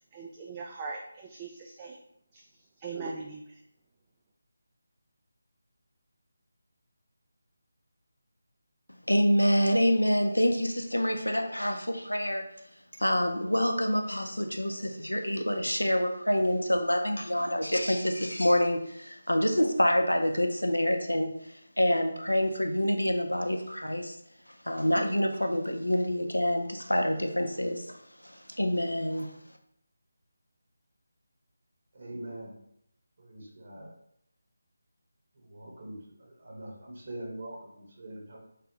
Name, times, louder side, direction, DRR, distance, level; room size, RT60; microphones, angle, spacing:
voice 1, 0.1-2.0 2.3-2.4 2.8-3.6, right 4 dB, 20° right, 0 dB, 0.3 m, -40 dB
voice 2, 9.1-12.4 13.0-21.3 21.8-24.2 24.7-27.9 28.2-29.3, equal, 85° left, 4 dB, 0.5 m, -27 dB
voice 3, 31.9-32.6 33.2-33.9 35.4-38.4, right 1 dB, 45° right, -3 dB, 1.1 m, -43 dB
3.4 x 3.3 x 2.9 m, 0.73 s
figure-of-eight pair, 155°, 0 cm